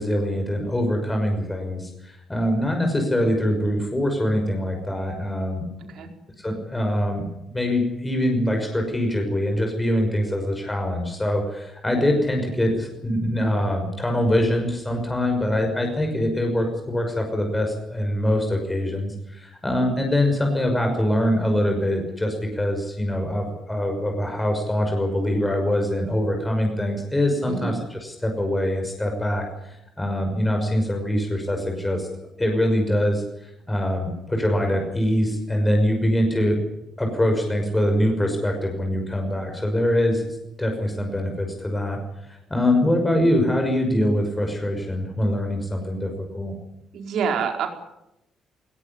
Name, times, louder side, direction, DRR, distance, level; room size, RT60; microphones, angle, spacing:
voice 1, 0.0-5.7 6.4-7.3 7.5-32.1 32.4-33.2 33.7-36.6 37.0-40.2 40.6-46.5, left 1 dB, 15° left, 3 dB, 5.9 m, -23 dB
voice 2, 5.8-6.1 27.4-27.8 46.9-47.7, right 6 dB, 75° right, 4 dB, 4.9 m, -27 dB
20.0 x 18.0 x 10.0 m, 0.86 s
cardioid pair, 90°, 0 cm